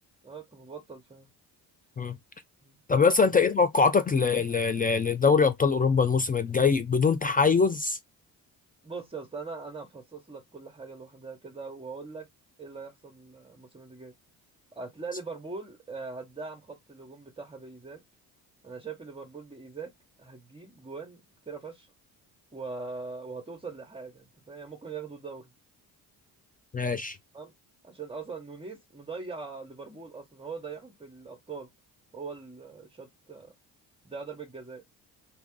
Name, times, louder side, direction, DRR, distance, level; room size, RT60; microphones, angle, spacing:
voice 1, 0.2-1.3 2.6-3.1 8.8-12.3 12.6-14.1 14.8-18.0 18.6-19.9 20.2-21.9 22.5-25.5 27.3-27.5 27.8-31.7 32.1-33.5 34.0-34.8, right 4 dB, 15° right, 0.9 m, -41 dB
voice 2, 2.9-8.0 26.7-27.2, left 5 dB, 20° left, 0.3 m, -23 dB
2.8 x 2.3 x 3.7 m
supercardioid pair, 60°, 43 cm